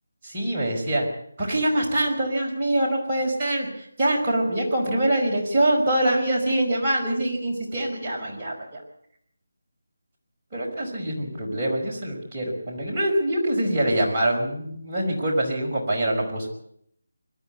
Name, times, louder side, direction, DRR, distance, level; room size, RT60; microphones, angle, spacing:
voice 1, 0.2-1.1 1.4-8.8 10.5-16.5, right 1 dB, 25° right, -2 dB, 5.3 m, -24 dB
21.5 x 13.0 x 9.4 m, 0.69 s
figure-of-eight pair, 160°, 0 cm